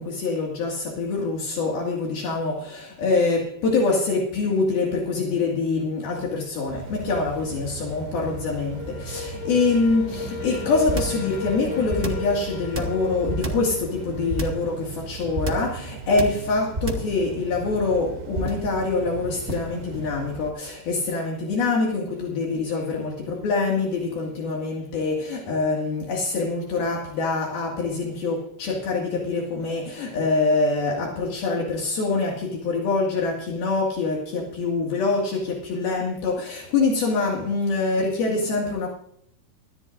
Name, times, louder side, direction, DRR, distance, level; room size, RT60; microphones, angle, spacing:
voice 1, 0.0-38.9, left 3 dB, 65° left, 3.9 m, -25 dB
sound 1, 6.7-20.5, right 6 dB, 80° right, 3.8 m, -38 dB
sound 2, 7.8-15.4, left 6 dB, 10° left, 3.9 m, -35 dB
sound 3, 10.9-11.2 11.9-12.3 12.7-13.7 14.3-14.7 15.3-15.7 16.2-16.5 16.7-17.2 18.3-18.7 19.5-19.8, right 2 dB, 40° right, 0.8 m, -28 dB
22.0 x 14.0 x 2.6 m
omnidirectional pair, 4.7 m